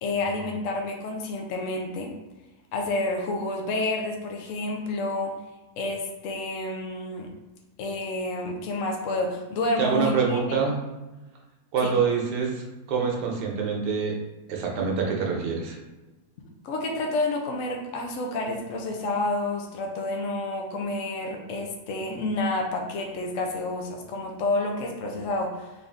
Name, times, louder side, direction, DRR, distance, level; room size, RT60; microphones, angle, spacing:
voice 1, 0.0-2.2 2.7-5.3 5.8-7.3 7.8-10.6 11.8-11.9 16.6-25.7, left 2 dB, 65° left, 2 dB, 0.8 m, -29 dB
voice 2, 9.8-10.8 11.7-12.5 12.9-14.1 14.5-15.8, right 5 dB, 85° right, 0 dB, 1.4 m, -25 dB
3.8 x 2.5 x 3.3 m, 1.1 s
omnidirectional pair, 1.8 m